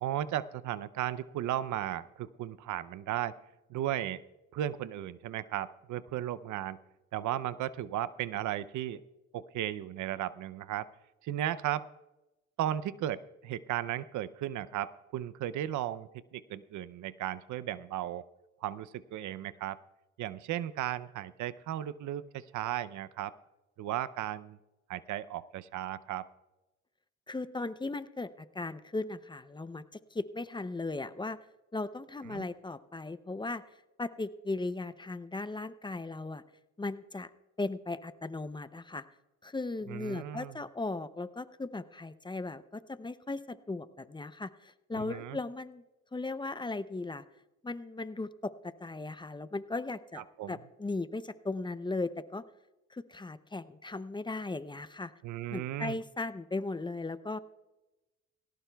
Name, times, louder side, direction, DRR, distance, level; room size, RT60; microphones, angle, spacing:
voice 1, 0.0-3.4 3.7-4.2 4.5-6.8 7.1-9.0 9.3-10.9 11.2-11.9 12.6-18.2 18.6-19.8 20.2-23.3 23.8-24.6 24.9-26.3 32.3-32.4 39.9-40.6 45.0-45.4 50.4-50.6 55.2-56.0, right 12 dB, 75° right, 17 dB, 0.6 m, -35 dB
voice 2, 27.3-29.8 30.1-31.4 31.7-33.6 34.0-36.4 36.8-37.3 37.6-39.0 39.4-45.8 46.1-47.2 47.6-50.2 50.5-52.4 52.9-55.1 55.5-57.4, left 3 dB, 15° left, 13 dB, 0.5 m, -37 dB
18.5 x 17.5 x 2.3 m, 1.0 s
cardioid pair, 90°, 30 cm